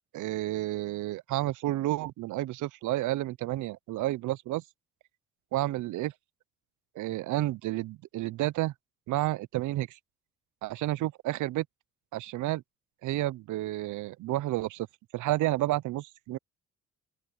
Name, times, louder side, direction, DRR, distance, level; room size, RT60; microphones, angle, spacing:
voice 1, 0.1-4.6 5.5-6.1 7.0-8.7 9.1-10.0 10.6-11.7 12.1-12.6 13.0-14.9 15.1-16.4, right 16 dB, 80° right, 0.6 m, -30 dB
open air
cardioid pair, 90°, 30 cm